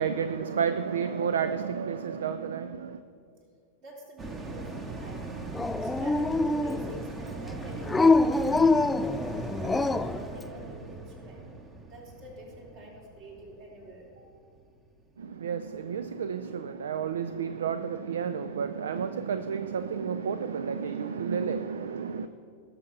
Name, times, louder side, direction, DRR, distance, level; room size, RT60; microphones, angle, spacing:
voice 1, 0.0-3.0 15.2-22.3, right 7 dB, 65° right, 13 dB, 0.4 m, -31 dB
voice 2, 3.8-5.2 5.8-9.0 9.6-11.4 11.9-14.2, equal, 45° right, -1 dB, 3.2 m, -46 dB
sound 1, 4.2-14.9 15.3-15.4, right 3 dB, 20° right, 1.2 m, -40 dB
Dog, 5.5-7.0 7.9-10.2, left 3 dB, 10° left, 0.3 m, -24 dB
18.5 x 6.9 x 5.8 m, 2.3 s
figure-of-eight pair, 90°, 0 cm